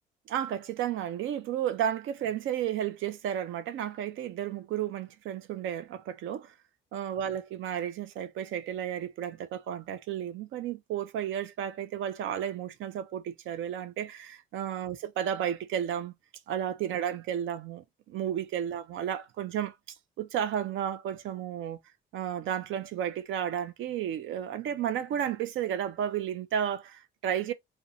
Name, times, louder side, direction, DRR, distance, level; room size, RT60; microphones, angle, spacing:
voice 1, 0.3-6.5 6.9-16.1 16.5-19.7 20.2-21.8 22.1-27.5, right 10 dB, 80° right, 0.5 m, -32 dB
2.4 x 2.2 x 2.6 m
cardioid pair, 90°, 20 cm